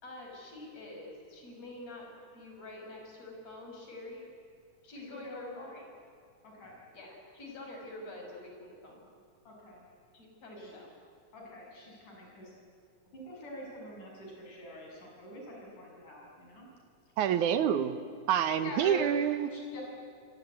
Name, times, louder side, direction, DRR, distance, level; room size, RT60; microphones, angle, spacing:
voice 1, 0.0-4.3 4.8-5.8 6.6-9.0 10.1-10.9, left 2 dB, 55° left, 1 dB, 7.1 m, -46 dB
voice 2, 5.0-5.7 6.4-6.8 9.5-9.9 10.5-10.7 11.3-12.5 13.1-16.7 18.6-19.1 19.5-19.8, left 1 dB, 85° left, -1 dB, 8.6 m, -45 dB
voice 3, 17.2-18.0 18.3-19.5, right 9 dB, 80° right, 11 dB, 2.6 m, -27 dB
28.5 x 22.5 x 9.4 m, 2.2 s
omnidirectional pair, 3.5 m